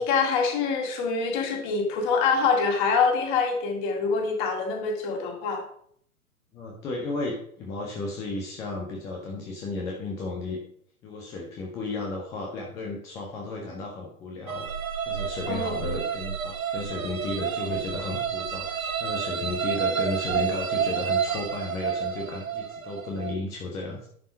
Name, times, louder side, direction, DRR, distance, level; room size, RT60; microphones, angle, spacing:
voice 1, 0.0-5.6 15.5-15.7, left 5 dB, 30° left, 2 dB, 2.3 m, -25 dB
voice 2, 6.5-10.6 11.0-14.7 15.1-24.1, left 2 dB, 5° left, -1 dB, 0.5 m, -34 dB
sound 1, 14.5-23.3, right 7 dB, 65° right, 1.2 m, -30 dB
10.5 x 5.4 x 5.1 m, 0.64 s
figure-of-eight pair, 115°, 44 cm